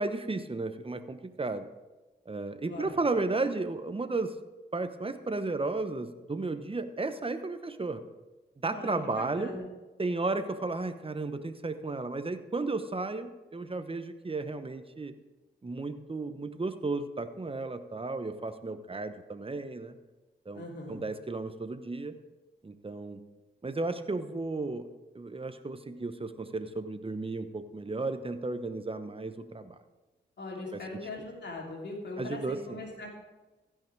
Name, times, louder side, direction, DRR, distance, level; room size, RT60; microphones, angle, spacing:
voice 1, 0.0-1.7 2.3-4.4 4.7-8.0 8.6-9.5 10.0-15.1 15.6-20.0 20.5-22.2 22.6-23.2 23.6-24.9 25.1-29.8 30.7-30.8 32.2-32.8, right 3 dB, 30° right, 10 dB, 1.0 m, -34 dB
voice 2, 8.7-9.7 20.5-21.0 30.4-33.2, left 2 dB, 65° left, -1 dB, 2.8 m, -40 dB
15.5 x 5.8 x 4.7 m, 1.1 s
supercardioid pair, 45°, 19 cm